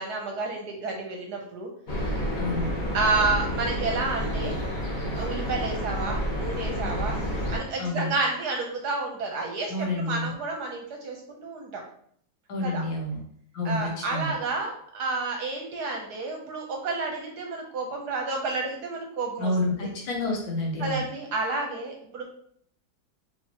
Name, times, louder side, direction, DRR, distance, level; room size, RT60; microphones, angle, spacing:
voice 1, 0.0-1.7 2.9-4.5 5.1-7.2 7.5-11.8 12.6-12.8 13.6-19.5 20.8-22.2, right 3 dB, 65° right, 1 dB, 1.1 m, -30 dB
sound 1, 1.9-7.6, equal, 40° left, 0.7 m, -29 dB
voice 2, 2.4-2.7 7.8-8.1 9.7-10.3 12.5-13.2 13.5-14.3 19.4-21.0, left 2 dB, 80° left, -1 dB, 1.8 m, -29 dB
4.7 x 3.1 x 2.8 m, 0.64 s
omnidirectional pair, 2.1 m